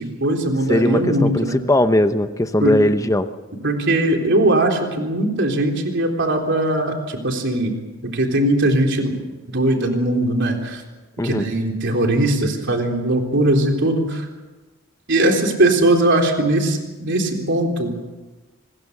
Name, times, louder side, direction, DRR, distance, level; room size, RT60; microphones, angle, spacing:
voice 1, 0.0-1.6 2.6-2.7 3.6-7.7 8.0-9.2 9.5-10.8 11.2-14.3 15.1-17.9, right 1 dB, 55° right, 3 dB, 3.8 m, -20 dB
voice 2, 0.7-3.3 11.2-11.5, left 1 dB, 15° left, 9 dB, 0.9 m, -19 dB
25.5 x 21.0 x 6.8 m, 1.2 s
head